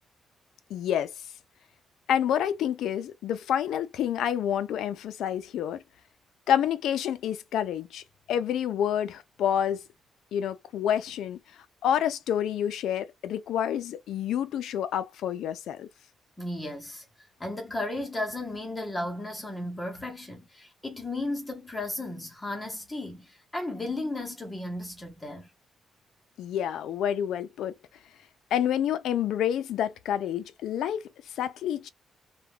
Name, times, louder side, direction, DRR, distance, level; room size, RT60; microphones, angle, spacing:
voice 1, 0.7-1.1 2.1-5.8 6.5-8.0 8.3-9.8 10.3-11.4 11.8-15.9 26.4-27.7 28.5-31.0 31.4-31.9, left 10 dB, 90° left, 0.3 m, -28 dB
voice 2, 16.4-17.0 17.4-25.5, left 2 dB, 10° left, 0.8 m, -34 dB
2.3 x 2.2 x 3.2 m
cardioid pair, 175°, 0 cm